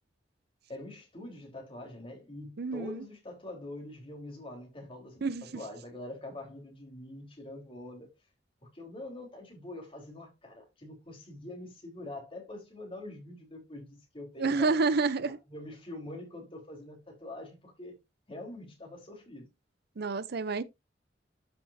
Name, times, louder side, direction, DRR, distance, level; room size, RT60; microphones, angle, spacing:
voice 1, 0.7-8.1 8.7-14.8 15.2-18.0 18.3-19.5, left 1 dB, 30° left, 3.7 m, -44 dB
voice 2, 2.6-3.0 5.2-5.5 14.4-15.4 20.0-20.6, right 4 dB, 60° right, 0.6 m, -28 dB
12.0 x 6.0 x 2.6 m
head